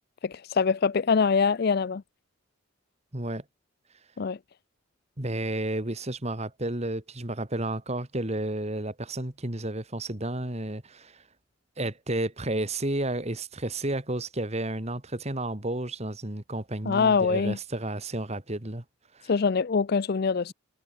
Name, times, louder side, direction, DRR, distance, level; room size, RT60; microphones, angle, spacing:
voice 1, 0.2-2.0 4.2-4.4 16.9-17.6 19.3-20.5, left 5 dB, 50° left, 0.4 m, -24 dB
voice 2, 3.1-3.4 5.2-11.2 11.8-18.8 19.1-19.3, right 1 dB, 35° right, 2.3 m, -32 dB
head